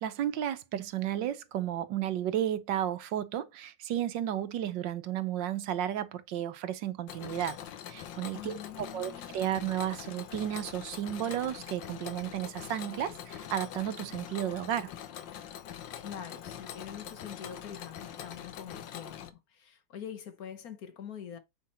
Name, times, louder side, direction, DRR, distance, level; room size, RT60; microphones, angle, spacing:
voice 1, 0.0-7.6 7.9-14.9, right 11 dB, 80° right, 1.5 m, -33 dB
Mechanisms, 7.1-19.3, left 9 dB, 85° left, 1.6 m, -44 dB
voice 2, 8.3-9.4 15.9-21.4, left 8 dB, 60° left, 1.3 m, -44 dB
7.4 x 5.6 x 4.3 m
omnidirectional pair, 2.0 m